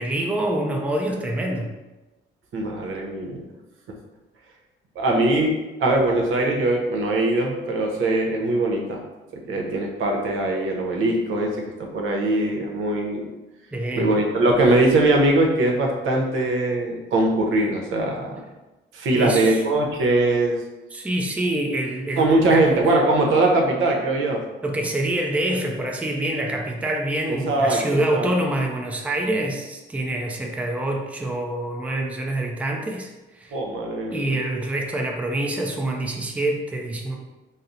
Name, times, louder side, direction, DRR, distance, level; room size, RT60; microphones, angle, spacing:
voice 1, 0.0-1.8 13.7-14.1 19.1-19.6 20.9-22.7 24.6-33.6 34.1-37.2, right 1 dB, 5° right, 1 dB, 0.4 m, -26 dB
voice 2, 2.5-3.5 5.0-5.5 5.8-9.0 9.3-13.3 13.9-18.4 18.9-20.6 22.2-24.4 27.3-28.3 33.5-34.3, right 2 dB, 75° right, 1 dB, 0.8 m, -21 dB
4.1 x 2.0 x 3.9 m, 1.1 s
cardioid pair, 110°, 21 cm